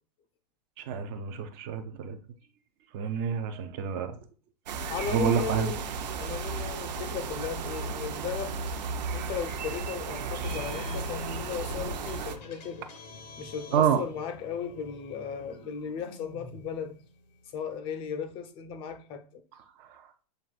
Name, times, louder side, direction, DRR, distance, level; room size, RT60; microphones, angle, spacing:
voice 1, 0.8-2.2 2.9-4.2 5.1-5.7 13.7-14.0 19.8-20.0, right 7 dB, 30° right, 0.5 m, -28 dB
sound 1, 4.7-12.4, right 4 dB, 85° right, 0.6 m, -34 dB
voice 2, 4.9-5.8 6.1-8.6 9.1-12.9 13.4-17.0 17.5-19.4, left 7 dB, 25° left, 0.5 m, -36 dB
sound 2, 10.4-17.8, left 3 dB, 90° left, 1.1 m, -46 dB
7.5 x 2.5 x 2.3 m
hypercardioid pair, 150°, 21 cm